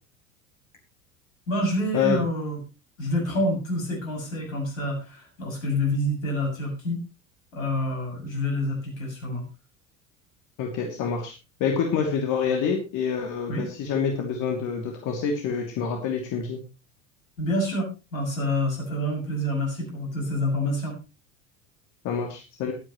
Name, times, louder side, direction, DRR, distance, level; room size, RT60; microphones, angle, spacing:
voice 1, 1.5-2.6 3.0-7.0 7.5-9.4 13.5-13.7 17.4-21.0, left 1 dB, 75° left, 0 dB, 7.2 m, -27 dB
voice 2, 10.6-11.3 11.6-16.6 22.0-22.7, left 6 dB, 50° left, 2 dB, 2.8 m, -27 dB
21.5 x 9.0 x 3.1 m, 0.30 s
figure-of-eight pair, 75°, 40 cm